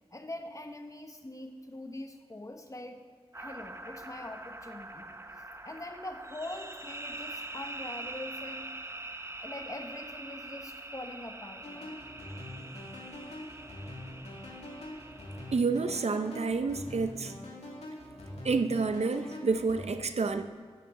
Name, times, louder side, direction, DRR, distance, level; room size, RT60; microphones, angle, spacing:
voice 1, 0.1-3.0 3.3-5.1 5.6-8.7 9.4-12.0, left 1 dB, 30° left, 5 dB, 1.1 m, -43 dB
sound 1, 3.3-15.6, right 2 dB, 25° right, 0.7 m, -44 dB
sound 2, 11.6-19.9, left 1 dB, 90° left, 2.3 m, -44 dB
voice 2, 15.5-17.3 18.4-20.4, right 4 dB, 80° right, 9 dB, 0.6 m, -29 dB
13.0 x 9.8 x 3.7 m, 1.5 s
wide cardioid pair, 45°, 11 cm